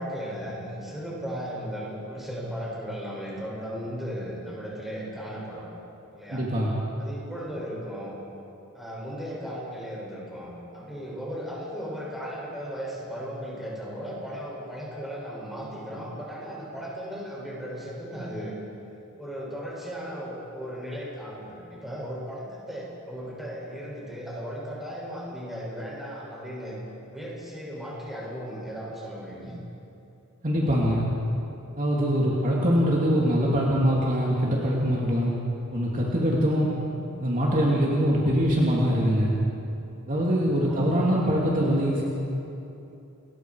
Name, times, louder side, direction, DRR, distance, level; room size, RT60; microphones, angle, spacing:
voice 1, 0.0-5.7 6.1-6.5 7.0-8.1 8.7-18.6 19.2-26.8 27.1-29.6 36.8-36.9 40.6-40.8, equal, ahead, -5 dB, 7.3 m, -36 dB
voice 2, 6.3-6.7 30.4-31.1 31.8-35.3 35.7-36.7 37.2-39.3 40.1-42.0, equal, 40° right, -4 dB, 2.9 m, -23 dB
29.0 x 22.5 x 4.9 m, 2.8 s
head